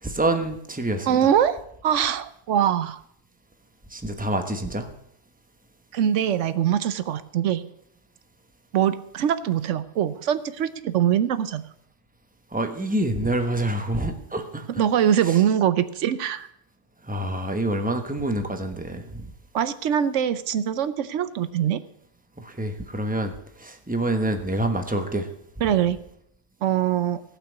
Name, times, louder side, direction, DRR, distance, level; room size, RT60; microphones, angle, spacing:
voice 1, 0.0-1.3 3.9-4.9 12.5-14.8 15.3-15.4 17.1-19.3 22.4-23.3 23.6-25.3, right 1 dB, 5° right, 6 dB, 1.2 m, -27 dB
voice 2, 1.1-1.6 1.8-3.0 5.9-7.6 8.7-11.6 14.8-16.5 19.5-21.8 25.6-26.0 26.6-27.2, right 9 dB, 90° right, 14 dB, 1.1 m, -23 dB
16.5 x 5.9 x 8.2 m, 0.72 s
omnidirectional pair, 1.2 m